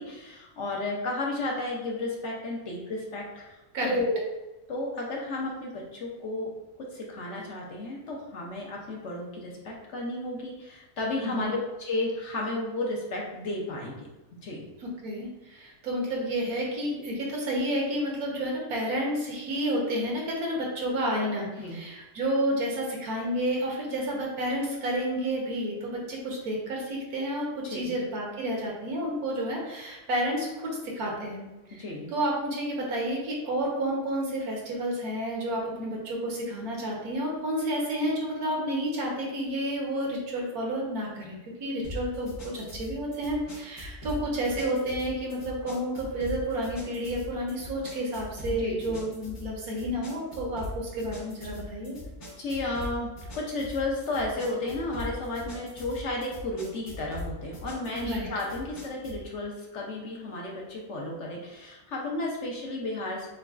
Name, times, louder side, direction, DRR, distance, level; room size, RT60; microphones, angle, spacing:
voice 1, 0.0-3.6 3.8-4.2 4.7-6.5 6.8-13.9 14.4-14.6 21.6-21.8 27.6-27.9 31.8-32.1 48.6-49.0 52.4-63.3, left 2 dB, 60° left, -2 dB, 0.9 m, -33 dB
voice 2, 11.2-11.5 14.8-31.8 32.1-52.0 58.0-58.3, right 1 dB, 80° right, -2 dB, 1.5 m, -30 dB
sound 1, 41.8-59.3, left 1 dB, 80° left, 2.0 m, -41 dB
6.8 x 2.3 x 2.4 m, 1.1 s
omnidirectional pair, 1.6 m